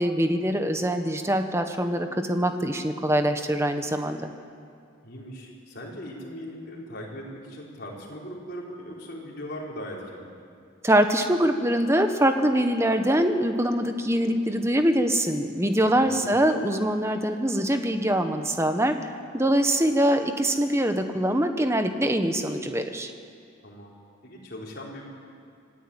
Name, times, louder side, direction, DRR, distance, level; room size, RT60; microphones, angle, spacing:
voice 1, 0.0-4.3 10.8-19.0 19.3-23.1, right 1 dB, 15° right, 6 dB, 1.3 m, -23 dB
voice 2, 5.0-10.3 16.0-16.4 23.6-23.9 24.2-25.0, equal, 50° left, -2 dB, 4.9 m, -39 dB
25.5 x 17.0 x 9.0 m, 2.5 s
head